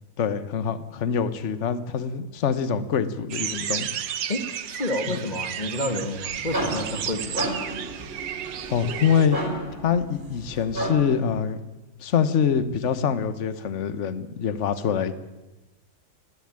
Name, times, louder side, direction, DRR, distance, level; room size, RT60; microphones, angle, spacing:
voice 1, 0.2-3.9 5.1-5.2 8.7-9.4 9.8-11.6 12.0-15.2, left 7 dB, 45° left, 13 dB, 1.2 m, -25 dB
sound 1, 3.3-9.3, right 9 dB, 65° right, 1.6 m, -32 dB
voice 2, 4.3-7.5, left 1 dB, 20° left, 8 dB, 1.8 m, -30 dB
sound 2, 6.2-11.3, right 1 dB, 25° right, 4.4 m, -33 dB
20.5 x 14.5 x 8.9 m, 1.1 s
omnidirectional pair, 2.3 m